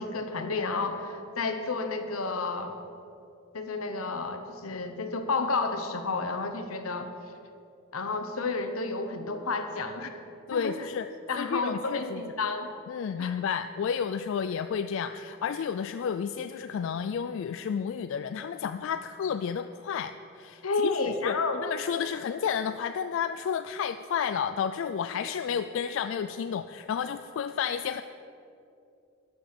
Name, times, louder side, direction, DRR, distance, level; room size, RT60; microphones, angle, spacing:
voice 1, 0.0-2.8 3.5-7.1 7.9-10.2 10.5-10.9 11.3-12.7 13.2-13.4 20.6-21.6 25.1-25.2, left 3 dB, 85° left, 6 dB, 1.0 m, -31 dB
voice 2, 10.5-11.1 11.4-12.2 12.9-28.0, left 7 dB, 60° left, 10 dB, 0.3 m, -31 dB
12.5 x 6.2 x 6.5 m, 2.6 s
head